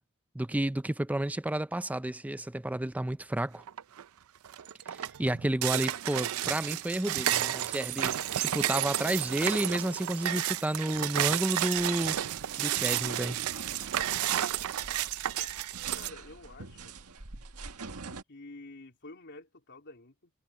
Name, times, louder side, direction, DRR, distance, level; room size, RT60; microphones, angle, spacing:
voice 1, 0.3-3.6 4.9-12.2 12.6-13.4, right 1 dB, 5° right, 0.4 m, -31 dB
sound 1, 3.7-4.0 4.4-16.1, right 12 dB, 70° right, 0.4 m, -31 dB
sound 2, 11.8-18.2, right 4 dB, 85° right, 1.7 m, -45 dB
voice 2, 15.9-16.9 18.3-20.3, left 2 dB, 55° left, 3.4 m, -49 dB
head